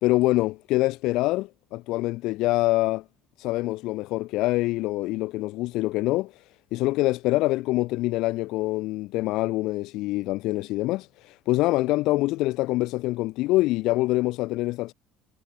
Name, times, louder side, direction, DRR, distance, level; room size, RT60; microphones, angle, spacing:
voice 1, 0.0-3.0 3.4-6.3 6.7-14.9, left 19 dB, 55° left, 0.4 m, -25 dB
cardioid pair, 180°, 0 cm